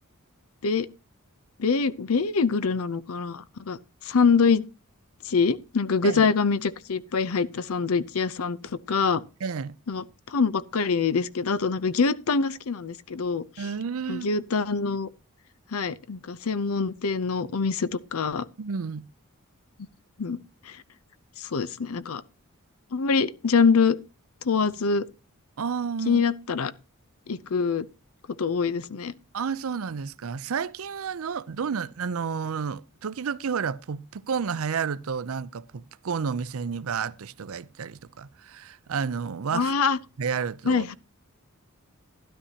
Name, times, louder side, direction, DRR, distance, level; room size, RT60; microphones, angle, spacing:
voice 1, 1.6-3.8 4.0-4.6 5.3-8.6 8.9-9.2 9.9-13.4 14.1-15.1 15.7-18.5 20.2-20.4 21.4-22.2 22.9-24.0 24.4-25.0 26.1-26.7 27.3-27.9 28.4-29.1 39.5-40.0 40.7-40.9, left 5 dB, 75° left, 0.6 m, -24 dB
voice 2, 9.4-9.8 13.6-14.3 18.6-19.1 25.6-26.2 29.3-39.7 40.2-40.9, right 6 dB, 70° right, 0.5 m, -31 dB
12.5 x 11.0 x 2.8 m
head